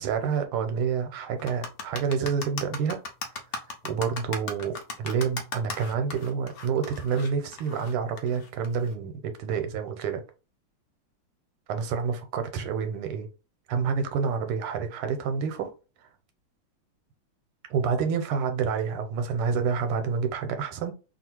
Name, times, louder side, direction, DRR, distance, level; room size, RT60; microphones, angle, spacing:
voice 1, 0.0-3.0 3.8-10.2 11.7-13.3 13.7-15.7 17.7-20.9, right 6 dB, 90° right, 7 dB, 1.7 m, -28 dB
sound 1, 1.4-8.9, left 4 dB, 60° left, 1.0 m, -37 dB
3.6 x 2.4 x 4.4 m, 0.32 s
omnidirectional pair, 2.3 m